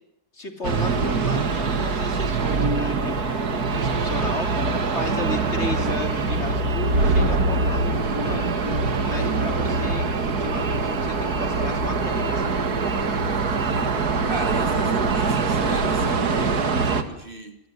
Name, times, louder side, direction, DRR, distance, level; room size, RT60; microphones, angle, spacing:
voice 1, 0.3-4.6 4.9-8.5 9.0-12.5, left 2 dB, 45° left, 3.3 m, -34 dB
sound 1, 0.6-17.0, right 3 dB, 75° right, 2.5 m, -23 dB
voice 2, 13.6-17.6, right 2 dB, 35° right, 2.5 m, -36 dB
27.5 x 19.5 x 9.9 m
omnidirectional pair, 1.7 m